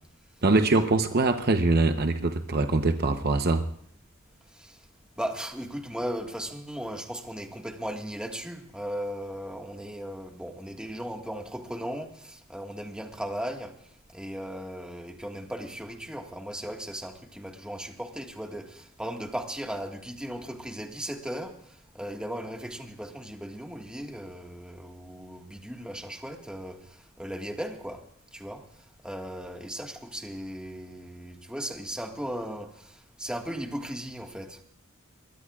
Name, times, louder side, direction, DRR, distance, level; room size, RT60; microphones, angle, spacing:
voice 1, 0.4-3.6, right 2 dB, 45° right, 7 dB, 0.9 m, -23 dB
voice 2, 5.2-13.7 14.1-21.6 21.9-26.8 27.2-28.0 28.3-28.6 29.0-34.6, equal, 5° right, 3 dB, 1.7 m, -37 dB
23.5 x 21.0 x 2.4 m, 0.66 s
head